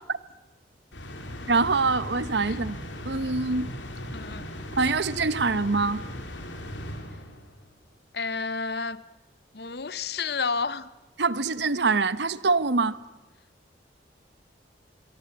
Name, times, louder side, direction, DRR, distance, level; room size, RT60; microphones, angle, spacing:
sound 1, 0.9-7.6, equal, 85° left, 3.5 m, -38 dB
voice 1, 1.5-2.8 3.0-3.7 4.8-6.0 11.2-13.0, right 4 dB, 70° right, 0.9 m, -24 dB
voice 2, 4.1-4.5 8.1-9.0 9.5-10.9, left 5 dB, 60° left, 0.8 m, -30 dB
25.5 x 22.5 x 8.7 m
head